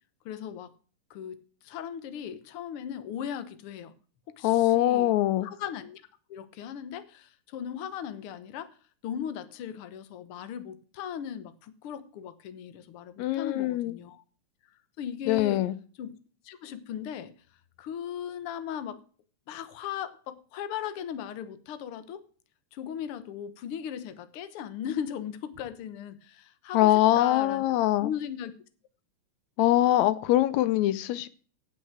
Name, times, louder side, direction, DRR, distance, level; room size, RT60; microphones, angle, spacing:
voice 1, 0.2-0.7 1.1-3.9 4.3-5.1 5.4-6.0 6.3-8.8 9.0-14.2 15.0-15.6 16.0-16.1 16.4-17.3 17.8-19.0 19.5-22.3 22.7-27.6 28.0-28.5, left 9 dB, 65° left, 12 dB, 1.4 m, -37 dB
voice 2, 4.4-5.5 13.2-14.0 15.3-15.7 26.7-28.1 29.6-31.3, left 14 dB, 85° left, 15 dB, 1.6 m, -23 dB
9.5 x 8.0 x 7.4 m, 0.41 s
omnidirectional pair, 3.9 m